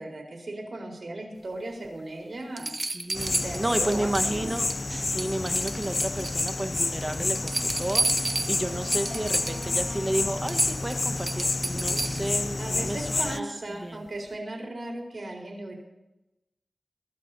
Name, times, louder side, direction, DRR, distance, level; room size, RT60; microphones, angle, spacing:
voice 1, 0.0-2.8 3.2-4.5 12.6-15.7, right 1 dB, 55° right, 1 dB, 4.3 m, -36 dB
sound 1, 1.8-1.9 2.6-4.3 4.6-4.9 5.2-6.6 7.0-9.7 10.1-10.2 10.5-12.4 14.1-14.2, right 2 dB, 40° right, 0.9 m, -31 dB
voice 2, 2.9-14.0, right 1 dB, 25° right, 7 dB, 1.3 m, -32 dB
sound 2, 3.1-13.4, left 2 dB, 45° left, 0.4 m, -29 dB
Wind instrument woodwind instrument, 7.2-12.7, equal, 10° left, 3.3 m, -47 dB
23.5 x 12.5 x 2.8 m, 0.95 s
cardioid pair, 50°, 0 cm